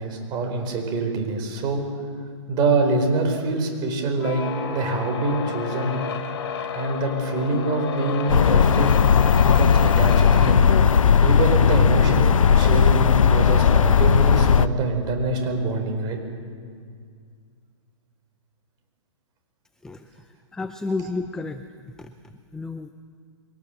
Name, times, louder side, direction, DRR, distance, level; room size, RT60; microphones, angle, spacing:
voice 1, 0.0-1.8 2.5-4.4 4.7-6.0 6.7-9.0 9.4-10.6 11.2-16.2, right 2 dB, 25° right, 4 dB, 4.5 m, -25 dB
sound 1, 4.1-14.4, left 6 dB, 50° left, 2.9 m, -32 dB
sound 2, 8.3-14.7, left 7 dB, 85° left, 0.8 m, -17 dB
voice 2, 19.8-22.9, left 3 dB, 5° left, 9 dB, 0.5 m, -33 dB
23.0 x 18.5 x 7.8 m, 2.1 s
hypercardioid pair, 145°, 16 cm